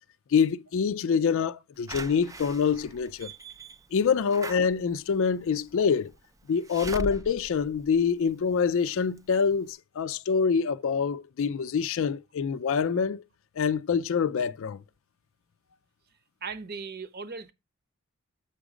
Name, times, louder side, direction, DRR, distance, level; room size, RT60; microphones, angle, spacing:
voice 1, 0.3-3.3 3.9-6.1 6.5-13.2 13.6-14.8, left 6 dB, 65° left, 0.4 m, -26 dB
Slam / Alarm, 1.9-8.7 9.2-9.3 9.5-9.6, right 2 dB, 15° right, 0.4 m, -41 dB
voice 2, 16.4-17.5, right 5 dB, 45° right, 0.9 m, -37 dB
7.2 x 5.0 x 4.9 m
head